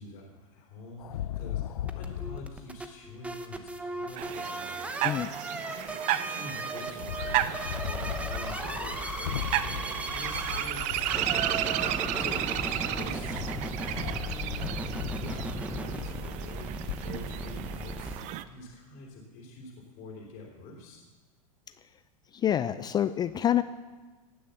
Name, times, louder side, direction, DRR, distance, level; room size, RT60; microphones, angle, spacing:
voice 1, 0.0-5.2 5.7-12.5 12.8-21.0, left 2 dB, 50° left, -1 dB, 3.6 m, -46 dB
sound 1, 1.0-2.6 7.0-16.3 16.9-17.0, left 11 dB, 75° left, 0.6 m, -38 dB
sound 2, 1.8-18.2, right 2 dB, 5° right, 0.9 m, -37 dB
sound 3, 4.2-18.4, right 13 dB, 40° right, 0.6 m, -33 dB
voice 2, 22.3-23.6, left 10 dB, 20° left, 13 dB, 0.4 m, -27 dB
18.5 x 6.4 x 7.1 m, 1.3 s
hypercardioid pair, 115°, 19 cm